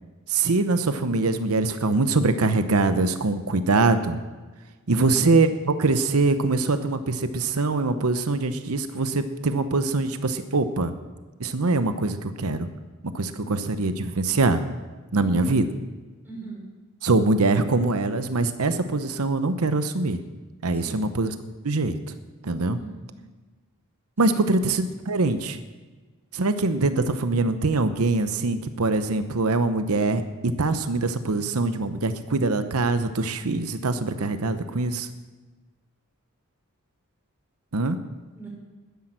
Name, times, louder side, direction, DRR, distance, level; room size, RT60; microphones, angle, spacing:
voice 1, 0.3-4.2 4.9-10.9 11.4-12.7 13.0-14.6 15.1-15.7 17.0-20.2 20.6-21.3 21.6-22.0 22.4-22.8 24.2-25.6 26.3-35.1 37.7-38.0, right 3 dB, 80° right, 10 dB, 0.8 m, -23 dB
voice 2, 4.9-5.4 15.2-15.6 16.2-16.7 20.7-21.1 22.8-23.2 24.3-24.5 38.3-38.5, right 3 dB, 10° right, -4 dB, 5.4 m, -39 dB
12.0 x 10.5 x 7.6 m, 1.3 s
head